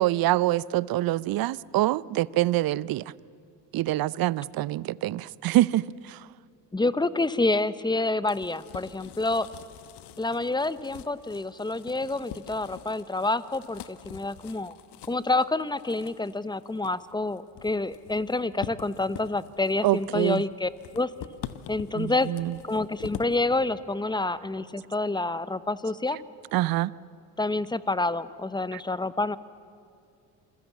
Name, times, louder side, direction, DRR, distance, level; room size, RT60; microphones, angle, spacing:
voice 1, 0.0-3.1 3.7-6.3 19.8-20.4 21.9-22.6 26.5-26.9 28.7-28.8, right 16 dB, 45° right, 22 dB, 0.7 m, -25 dB
voice 2, 6.7-9.5 10.2-14.8 15.1-21.1 21.7-22.3 22.7-26.2 27.4-29.4, left 2 dB, 10° left, 16 dB, 1.0 m, -28 dB
sound 1, 7.9-23.4, left 11 dB, 55° left, 1.2 m, -45 dB
27.5 x 21.5 x 8.4 m, 2.4 s
hypercardioid pair, 60°, 48 cm